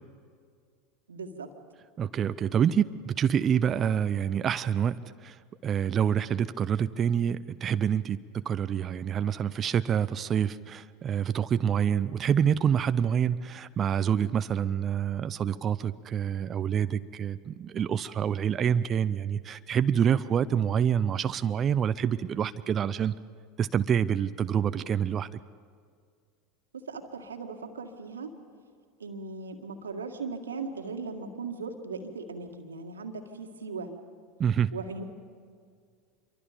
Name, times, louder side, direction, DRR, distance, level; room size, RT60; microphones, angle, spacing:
voice 1, 1.1-1.5 20.4-20.5 26.8-28.3 29.0-33.9 34.7-35.0, right 4 dB, 80° right, 5 dB, 2.0 m, -38 dB
voice 2, 2.0-23.1 23.6-25.4 34.4-34.7, right 8 dB, 35° right, 13 dB, 0.6 m, -27 dB
27.0 x 23.5 x 5.2 m, 2.1 s
figure-of-eight pair, 80°, 0 cm